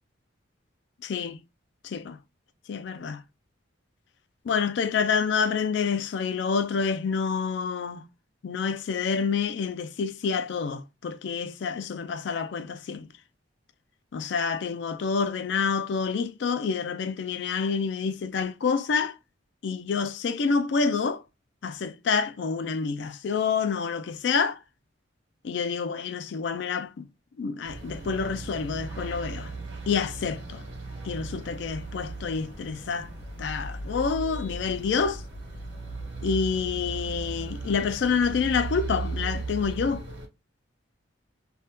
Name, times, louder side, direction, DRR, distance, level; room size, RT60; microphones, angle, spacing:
voice 1, 1.0-1.4 1.8-2.2 2.7-3.2 4.4-8.1 8.4-13.1 14.1-19.2 19.6-21.2 21.6-24.6 25.4-27.1 27.4-29.5 29.9-30.6 31.0-33.1 33.4-35.2 36.2-40.1, left 5 dB, 60° left, 0.3 m, -28 dB
sound 1, 27.6-40.3, right 3 dB, 60° right, 1.1 m, -37 dB
2.7 x 2.2 x 3.4 m
head